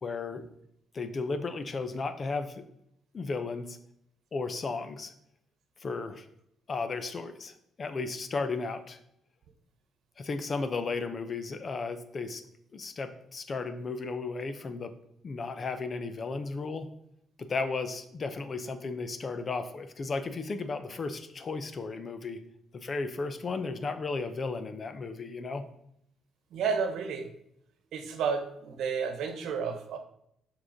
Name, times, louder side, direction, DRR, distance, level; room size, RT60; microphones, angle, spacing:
voice 1, 0.0-0.4 0.9-2.6 3.1-3.8 4.3-5.1 5.8-6.2 6.7-9.0 10.2-12.4 12.7-14.9 15.2-16.9 17.4-22.4 22.7-25.7, left 4 dB, 40° left, 10 dB, 0.8 m, -34 dB
voice 2, 26.5-27.3 27.9-30.0, right 6 dB, 80° right, 7 dB, 1.0 m, -31 dB
6.1 x 4.9 x 5.1 m, 0.75 s
cardioid pair, 90°, 0 cm